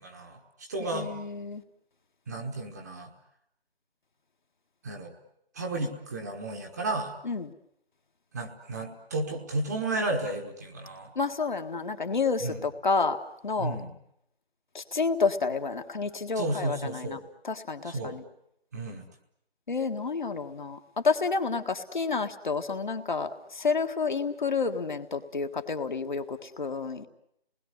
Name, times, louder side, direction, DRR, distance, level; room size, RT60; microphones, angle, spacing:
voice 1, 0.0-1.1 2.3-3.1 4.8-5.1 5.5-7.2 8.3-11.1 12.4-12.6 13.6-13.9 16.4-17.2 17.8-18.2 18.7-19.1, right 2 dB, 15° right, 2 dB, 1.3 m, -33 dB
voice 2, 0.8-1.6 7.2-7.5 11.2-13.2 13.4-13.8 14.7-17.2 17.4-18.2 19.7-27.1, left 4 dB, 50° left, 6 dB, 1.8 m, -30 dB
28.0 x 20.5 x 9.7 m, 0.79 s
figure-of-eight pair, 160°, 30 cm